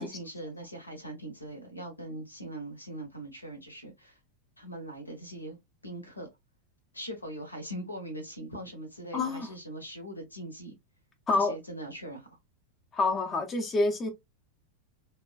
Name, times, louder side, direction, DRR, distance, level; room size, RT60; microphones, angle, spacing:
voice 1, 0.0-4.2 4.6-6.3 6.9-10.7 11.3-12.4, right 1 dB, 80° left, 0.8 m, -41 dB
voice 2, 9.1-9.5 11.3-11.5 12.9-14.1, left 3 dB, 20° left, 0.5 m, -27 dB
3.0 x 2.2 x 2.2 m
figure-of-eight pair, 90°, 0 cm